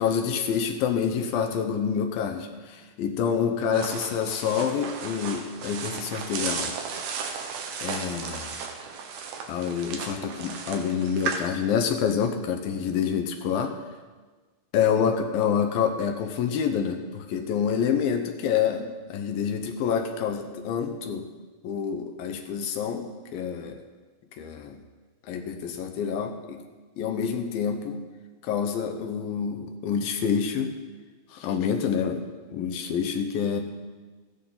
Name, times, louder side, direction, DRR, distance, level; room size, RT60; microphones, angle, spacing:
voice 1, 0.0-6.7 7.8-8.6 9.5-13.8 14.7-21.3 21.6-23.8 24.4-24.8 25.3-26.6 27.0-28.0 28.4-30.7 31.3-33.6, left 7 dB, 75° left, 5 dB, 2.5 m, -27 dB
sound 1, 3.7-11.4, right 6 dB, 85° right, 3.1 m, -35 dB
15.0 x 13.0 x 3.9 m, 1.4 s
omnidirectional pair, 4.4 m